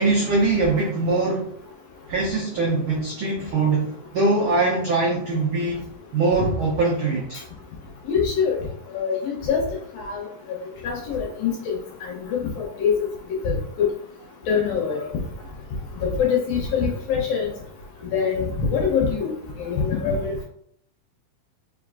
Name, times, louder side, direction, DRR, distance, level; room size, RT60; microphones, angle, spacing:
voice 1, 0.0-1.5 2.1-5.8 6.1-7.4, right 3 dB, 85° right, -3 dB, 1.1 m, -22 dB
voice 2, 8.1-8.6 8.9-9.6 10.0-10.2 10.8-13.9 14.5-15.0 16.0-17.5 18.1-19.3 19.6-20.4, left 6 dB, 70° left, -1 dB, 1.6 m, -24 dB
4.6 x 3.5 x 2.4 m, 0.66 s
omnidirectional pair, 3.5 m